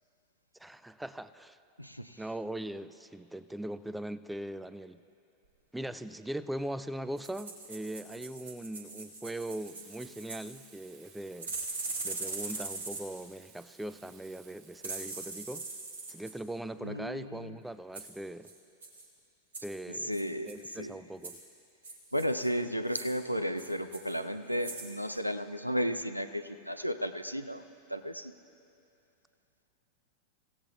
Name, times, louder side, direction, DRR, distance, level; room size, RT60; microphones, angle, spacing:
voice 1, 0.6-1.6 2.2-5.0 5.7-11.6 12.0-15.7 16.1-18.5 19.6-20.2 20.4-21.4, right 1 dB, 5° right, 14 dB, 0.4 m, -40 dB
voice 2, 1.8-2.2 16.8-17.5 20.1-20.9 22.1-27.6 27.9-28.3, equal, 90° right, 10 dB, 0.5 m, -34 dB
sound 1, 7.2-10.5 11.4-13.2 14.8-16.3 17.9-18.1 18.4-18.6 18.8-19.1 19.5-19.8 20.1-20.8 21.2-21.4 21.8-22.5 22.9-23.2 23.6-24.2 24.5-24.9 25.2-25.3, right 3 dB, 70° right, 2.0 m, -41 dB
Frying (food), 9.5-14.8, right 6 dB, 40° right, 1.4 m, -58 dB
28.0 x 16.0 x 2.3 m, 2.7 s
figure-of-eight pair, 90°, 0 cm